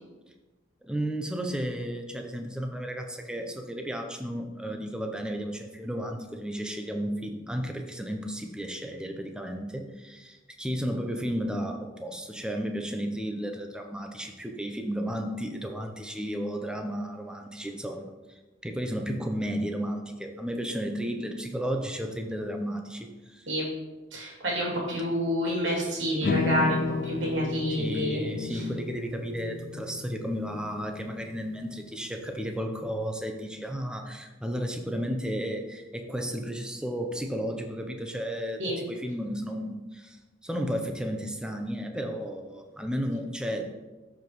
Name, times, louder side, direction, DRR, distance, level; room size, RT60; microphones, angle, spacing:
voice 1, 0.8-18.1 18.6-23.5 27.7-43.7, equal, 5° right, 4 dB, 0.7 m, -33 dB
voice 2, 24.1-28.2 28.5-28.6 38.6-38.8, equal, 85° right, -4 dB, 2.6 m, -28 dB
sound 1, 26.2-32.5, left 3 dB, 45° left, 0.4 m, -34 dB
12.5 x 4.9 x 3.1 m, 1.2 s
head